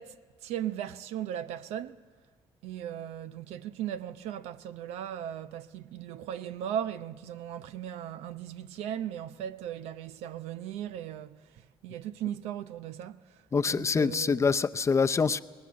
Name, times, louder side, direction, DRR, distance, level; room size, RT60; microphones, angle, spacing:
voice 1, 0.0-2.0 2.6-14.5, right 10 dB, 90° right, 0.7 m, -37 dB
voice 2, 13.5-15.4, left 5 dB, 30° left, 0.6 m, -25 dB
22.5 x 19.0 x 7.6 m
cardioid pair, 95°, 10 cm